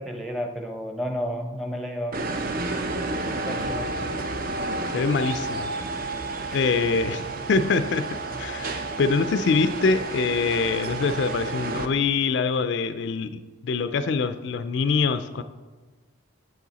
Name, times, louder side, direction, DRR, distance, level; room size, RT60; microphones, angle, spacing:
voice 1, 0.0-2.3 3.3-3.9 6.5-6.8, equal, ahead, 3 dB, 0.7 m, -32 dB
sound 1, 2.1-11.9, right 3 dB, 45° right, 0.6 m, -31 dB
voice 2, 4.9-5.7 6.5-8.1 8.4-15.4, left 4 dB, 60° left, 10 dB, 0.3 m, -24 dB
8.1 x 7.4 x 4.0 m, 1.3 s
head